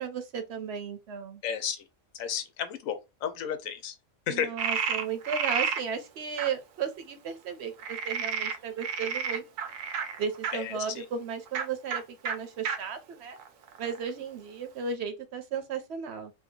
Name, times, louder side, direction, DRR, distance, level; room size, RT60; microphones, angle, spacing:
voice 1, 0.0-1.4 4.3-9.4 10.2-13.4 13.8-16.3, right 6 dB, 60° right, 0.8 m, -35 dB
voice 2, 1.4-1.9 2.2-4.0 4.3-4.5 10.5-11.0, left 8 dB, 85° left, 1.0 m, -33 dB
Frog, 4.6-5.8 6.4-6.5 7.8-10.5 11.5-11.6 11.9-12.0 12.2-12.3 12.6-12.8 13.4-14.1, right 6 dB, 90° right, 1.0 m, -31 dB
2.7 x 2.3 x 3.6 m
omnidirectional pair, 1.4 m